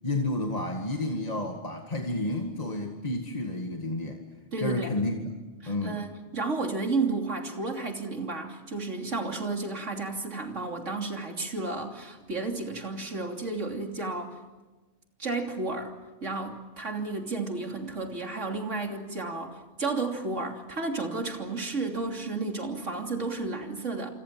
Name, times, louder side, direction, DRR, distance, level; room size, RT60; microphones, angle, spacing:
voice 1, 0.0-4.2 4.6-5.3 5.7-6.0, left 2 dB, 35° left, 2 dB, 2.1 m, -30 dB
voice 2, 4.5-4.9 5.6-14.4 15.2-15.9 16.2-24.1, right 3 dB, 85° right, 3 dB, 3.4 m, -32 dB
28.5 x 25.0 x 7.6 m, 1.2 s
omnidirectional pair, 1.2 m